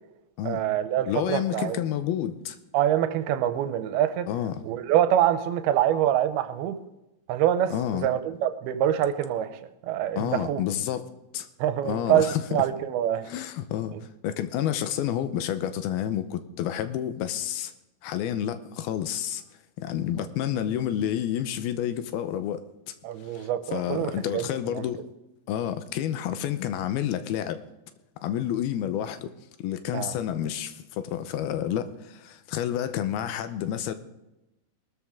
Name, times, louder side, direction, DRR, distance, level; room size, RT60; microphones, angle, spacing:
voice 1, 0.4-1.8 2.7-4.3 4.6-6.8 7.3-7.7 8.0-9.6 9.9-10.6 11.6-13.3 23.0-24.4 24.8-24.9 29.9-30.1, right 11 dB, 90° right, 2.7 m, -25 dB
voice 2, 1.1-2.6 4.3-4.6 7.7-8.1 10.2-11.1 11.3-11.5 11.8-12.6 13.3-13.9 14.2-17.7 18.0-19.4 19.8-22.7 23.3-25.1 25.5-27.6 28.2-29.3 29.6-33.9, left 10 dB, 85° left, 2.7 m, -29 dB
20.0 x 13.0 x 3.7 m
omnidirectional pair, 4.4 m